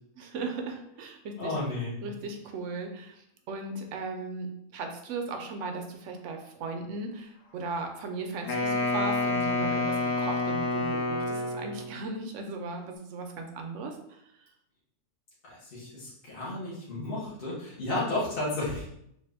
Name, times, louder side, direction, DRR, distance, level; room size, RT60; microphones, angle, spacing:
voice 1, 0.2-1.6 2.0-3.2 3.5-4.5 4.7-14.0, right 3 dB, 70° right, 4 dB, 0.9 m, -37 dB
voice 2, 1.4-2.2 15.5-18.8, left 2 dB, 45° left, -8 dB, 1.3 m, -33 dB
Wind instrument woodwind instrument, 8.5-11.9, left 2 dB, 75° left, 1.1 m, -28 dB
3.5 x 2.5 x 3.4 m, 0.75 s
omnidirectional pair, 1.4 m